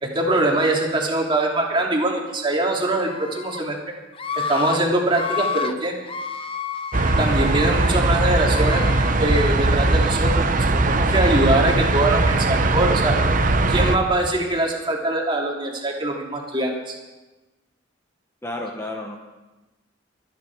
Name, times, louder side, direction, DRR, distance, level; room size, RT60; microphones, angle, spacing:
voice 1, 0.0-3.8 4.5-5.9 7.2-8.9 9.2-13.1 13.7-16.9, right 2 dB, 25° right, -1 dB, 2.7 m, -22 dB
Screaming, 3.0-3.6 4.1-4.8 5.1-5.7 6.1-7.9 8.4-9.1, left 5 dB, 30° left, 0.6 m, -30 dB
sound 1, 6.9-14.0, right 2 dB, 45° right, 0.9 m, -20 dB
voice 2, 18.4-19.2, left 1 dB, 15° left, 1 dB, 1.2 m, -31 dB
24.5 x 9.8 x 4.7 m, 1.1 s
head